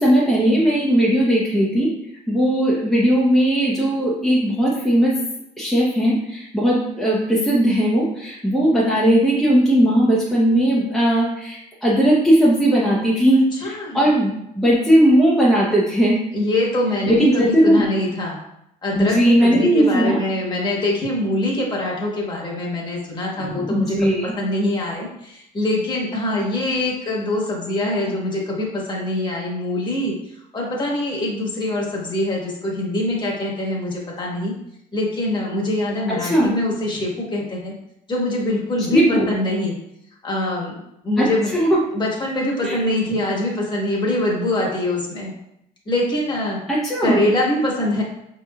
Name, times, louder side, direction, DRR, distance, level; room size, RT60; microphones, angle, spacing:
voice 1, 0.0-1.9 2.3-5.2 5.6-16.2 17.1-17.8 18.9-20.2 23.5-24.4 36.2-36.5 38.9-39.3 41.2-41.3 41.5-41.8 42.6-42.8 46.7-47.3, right 1 dB, ahead, -6 dB, 0.7 m, -18 dB
voice 2, 13.5-14.0 16.3-18.4 18.8-30.1 30.5-34.5 34.9-37.7 38.1-39.8 40.2-41.5 41.9-45.3 45.8-46.6 47.0-48.0, left 1 dB, 25° left, -3 dB, 1.2 m, -23 dB
5.1 x 3.0 x 2.3 m, 0.80 s
cardioid pair, 110°, 17 cm